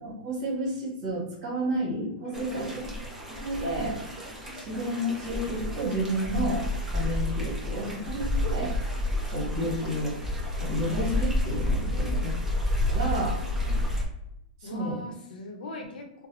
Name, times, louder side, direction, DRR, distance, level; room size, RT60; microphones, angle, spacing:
voice 1, 0.0-2.8 3.4-4.0 4.5-6.6 6.9-8.7 9.3-10.2 10.6-12.3 12.9-13.4 14.6-15.0, right 1 dB, 35° right, -4 dB, 1.2 m, -31 dB
voice 2, 2.2-2.7 11.8-12.4 13.4-13.9 14.6-16.3, left 3 dB, 70° left, 2 dB, 0.7 m, -40 dB
sound 1, 2.3-14.1, left 1 dB, 5° right, 0.4 m, -30 dB
2.4 x 2.0 x 3.3 m, 0.81 s
supercardioid pair, 175°, 5 cm